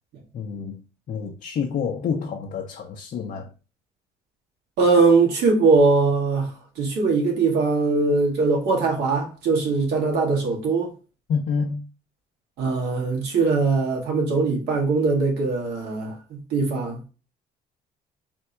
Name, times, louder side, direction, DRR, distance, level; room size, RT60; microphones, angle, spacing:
voice 1, 0.3-3.5 11.3-11.9, left 6 dB, 50° left, 0.7 m, -28 dB
voice 2, 4.8-10.9 12.6-17.1, right 4 dB, 80° right, 1.8 m, -21 dB
3.5 x 2.7 x 4.5 m
cardioid pair, 110°, 17 cm